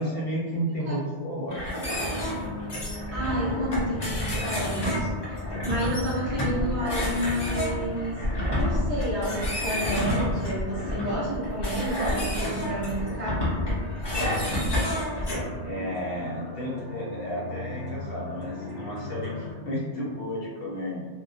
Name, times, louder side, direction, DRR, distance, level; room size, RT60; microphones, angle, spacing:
voice 1, 0.0-1.9 14.1-14.7 15.6-21.1, equal, 60° left, -5 dB, 0.8 m, -32 dB
sound 1, 1.5-15.4, equal, 30° left, 0.5 m, -29 dB
sound 2, 2.0-19.5, left 2 dB, 55° right, 0.7 m, -38 dB
voice 2, 3.1-13.4, equal, 15° left, -12 dB, 1.0 m, -31 dB
2.1 x 2.1 x 2.6 m, 1.4 s
omnidirectional pair, 1.2 m